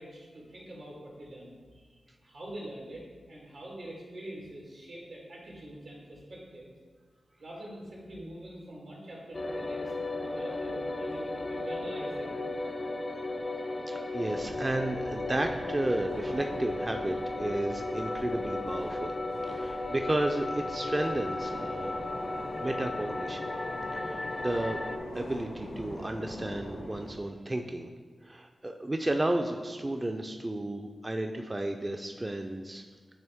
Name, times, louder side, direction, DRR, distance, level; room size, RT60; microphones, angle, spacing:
voice 1, 0.0-1.6 2.2-3.0 3.3-6.7 7.4-12.5, right 1 dB, 85° right, -3 dB, 1.7 m, -44 dB
sound 1, 9.3-25.0, left 2 dB, 45° left, 0.5 m, -35 dB
voice 2, 13.9-19.1 19.5-22.0 22.6-23.5 23.9-24.8 25.1-27.9 28.2-32.8, right 1 dB, 30° right, 4 dB, 0.4 m, -33 dB
sound 2, 14.3-27.1, left 1 dB, 85° left, 1.3 m, -43 dB
8.8 x 3.1 x 3.5 m, 1.5 s
cardioid pair, 45°, 0 cm